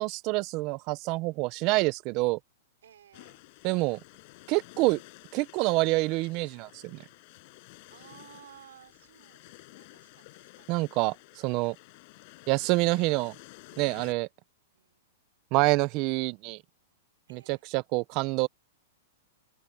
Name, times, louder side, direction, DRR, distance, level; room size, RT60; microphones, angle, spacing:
voice 1, 0.0-2.4 3.6-4.0 4.5-5.0 5.3-7.0 10.7-11.8 12.5-13.3 13.8-14.3 15.5-16.6 17.3-18.5, right 23 dB, 40° right, 1.1 m, -27 dB
voice 2, 2.8-3.4 7.9-10.9 12.6-12.7 14.7-15.2 17.3-17.6, right 10 dB, 80° right, 6.5 m, -56 dB
sound 1, 3.1-14.1, left 26 dB, 50° left, 7.6 m, -52 dB
open air
hypercardioid pair, 130°, 0 cm